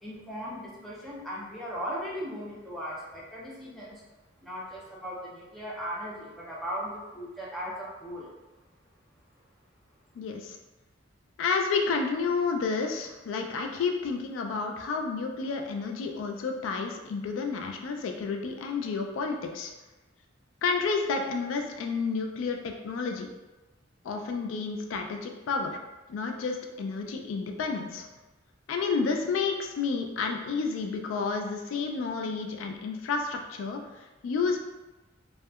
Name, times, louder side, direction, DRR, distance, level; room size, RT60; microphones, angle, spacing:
voice 1, 0.0-4.0 4.4-8.3, equal, ahead, -6 dB, 0.5 m, -37 dB
voice 2, 10.2-10.6 11.4-19.7 20.6-23.3 24.0-25.8 26.1-28.1 28.7-34.6, left 4 dB, 85° left, 4 dB, 0.3 m, -30 dB
2.7 x 2.2 x 2.3 m, 1.1 s
head